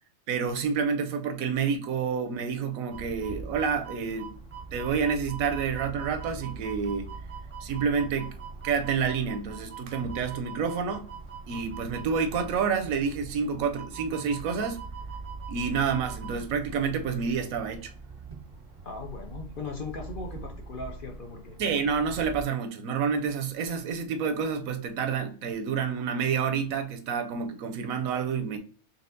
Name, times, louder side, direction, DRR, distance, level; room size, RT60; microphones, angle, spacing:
voice 1, 0.3-4.4 4.7-7.1 7.6-8.3 8.6-11.1 11.5-14.8 15.5-17.9 21.6-28.6, right 6 dB, 90° right, 1.0 m, -29 dB
sound 1, 2.9-22.4, right 4 dB, 40° right, 0.5 m, -42 dB
voice 2, 18.8-21.6, left 4 dB, 55° left, 0.6 m, -38 dB
4.1 x 3.4 x 2.6 m
omnidirectional pair, 1.4 m